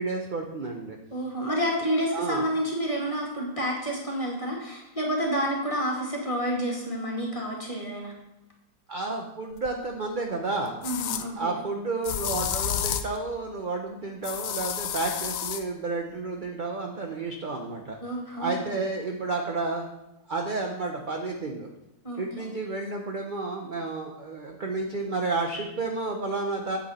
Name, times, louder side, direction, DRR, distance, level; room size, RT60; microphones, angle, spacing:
voice 1, 0.0-1.0 2.1-2.4 8.9-10.8 11.4-18.0 18.4-19.9 20.3-21.7 22.2-26.8, right 3 dB, 40° right, 2 dB, 0.7 m, -31 dB
voice 2, 1.1-8.1 10.8-11.5 18.0-18.6 22.0-22.5, equal, 20° left, -3 dB, 2.2 m, -29 dB
sound 1, 9.6-9.7 10.8-11.2 12.0-13.2 14.2-15.6, left 10 dB, 70° left, 0.8 m, -30 dB
8.6 x 8.3 x 4.3 m, 0.92 s
omnidirectional pair, 1.8 m